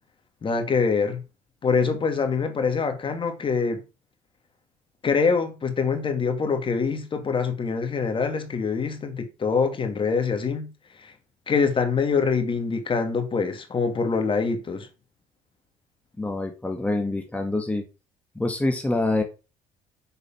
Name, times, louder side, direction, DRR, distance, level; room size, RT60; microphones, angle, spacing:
voice 1, 0.4-1.2 1.6-3.8 5.0-10.7 11.0-11.1 11.5-14.9, left 5 dB, 40° left, 2.5 m, -24 dB
voice 2, 16.2-17.8 18.3-19.2, left 2 dB, 10° left, 1.7 m, -26 dB
6.9 x 6.8 x 5.9 m
supercardioid pair, 75°, 14 cm